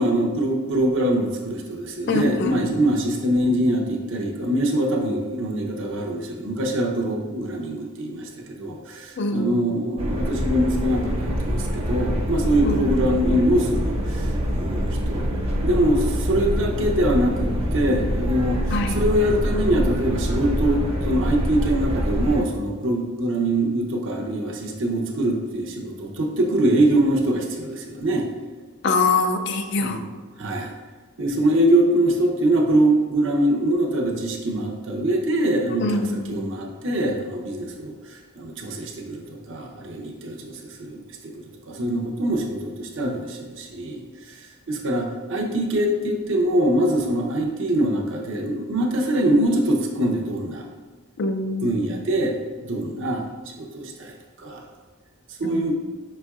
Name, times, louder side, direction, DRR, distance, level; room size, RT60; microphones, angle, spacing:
voice 1, 0.0-15.3 15.6-28.3 29.8-30.0 30.4-30.7 31.2-41.3 41.7-44.4 44.7-50.6 51.6-53.3 53.6-54.6 55.4-55.7, right 1 dB, 65° right, 0 dB, 0.7 m, -23 dB
voice 2, 2.1-2.7 9.2-9.8 12.6-13.1 18.7-19.0 28.8-30.0 35.7-36.5 51.2-52.0 55.4-55.6, left 3 dB, 55° left, 7 dB, 0.4 m, -25 dB
sound 1, 10.0-22.4, equal, 30° right, 0.5 m, -25 dB
5.3 x 4.3 x 2.3 m, 1.4 s
head